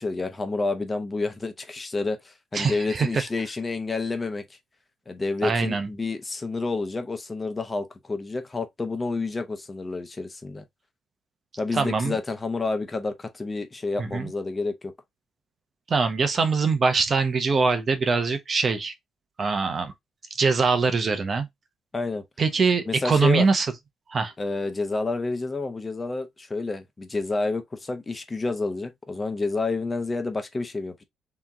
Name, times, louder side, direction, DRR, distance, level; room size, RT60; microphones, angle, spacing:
voice 1, 0.0-4.4 5.1-10.6 11.6-14.9 21.9-22.2 22.9-23.5 24.4-31.0, left 3 dB, 25° left, 0.9 m, -29 dB
voice 2, 2.5-3.2 5.4-5.9 11.7-12.2 14.0-14.3 15.9-18.9 19.4-19.9 20.4-21.5 22.4-23.7 24.1-24.3, right 4 dB, 40° right, 0.8 m, -23 dB
3.5 x 3.0 x 3.6 m
cardioid pair, 90°, 0 cm